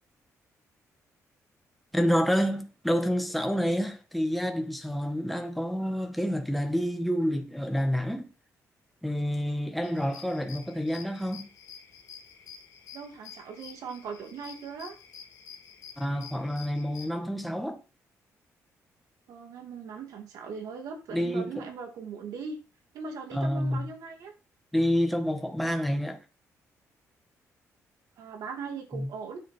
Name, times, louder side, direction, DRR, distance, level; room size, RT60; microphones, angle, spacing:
voice 1, 1.9-8.3 9.0-11.4 16.0-17.8 21.1-21.6 23.3-23.9 24.7-26.2 28.9-29.1, equal, ahead, 1.5 m, -28 dB
sound 1, 9.8-17.1, left 7 dB, 75° left, 2.6 m, -49 dB
voice 2, 12.9-14.9 19.3-22.6 22.9-24.3 28.2-29.4, right 5 dB, 80° right, 2.6 m, -39 dB
9.8 x 7.1 x 4.5 m
cardioid pair, 115°, 6 cm